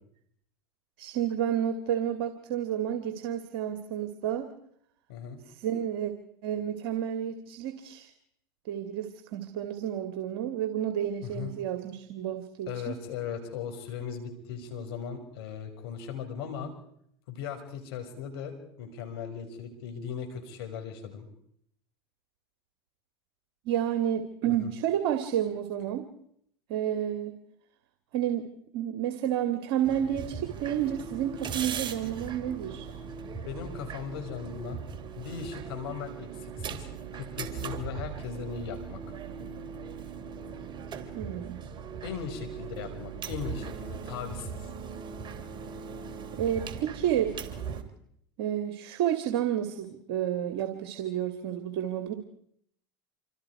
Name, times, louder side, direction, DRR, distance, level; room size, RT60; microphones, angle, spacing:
voice 1, 1.0-4.5 5.6-6.1 6.4-8.1 8.7-13.0 23.7-26.1 26.7-27.4 28.1-33.0 41.2-41.6 46.4-47.3 48.4-52.1, right 10 dB, 65° right, 8 dB, 2.2 m, -30 dB
voice 2, 5.1-5.4 11.2-11.5 12.7-16.7 17.3-21.3 24.4-24.7 33.4-34.8 35.2-36.9 37.1-39.0 42.0-44.7, left 7 dB, 75° left, 6 dB, 5.6 m, -38 dB
sound 1, 29.8-47.8, right 6 dB, 35° right, 3.1 m, -39 dB
27.5 x 26.5 x 4.8 m, 0.70 s
hypercardioid pair, 95°, 13 cm